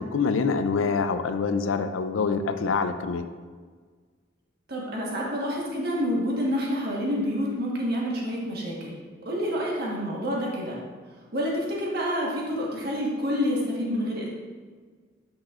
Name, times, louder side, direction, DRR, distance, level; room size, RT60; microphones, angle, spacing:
voice 1, 0.0-3.2, left 5 dB, 85° left, 9 dB, 0.4 m, -25 dB
voice 2, 4.7-10.8 11.3-14.3, equal, 55° right, -4 dB, 1.3 m, -28 dB
8.8 x 6.0 x 2.5 m, 1.5 s
head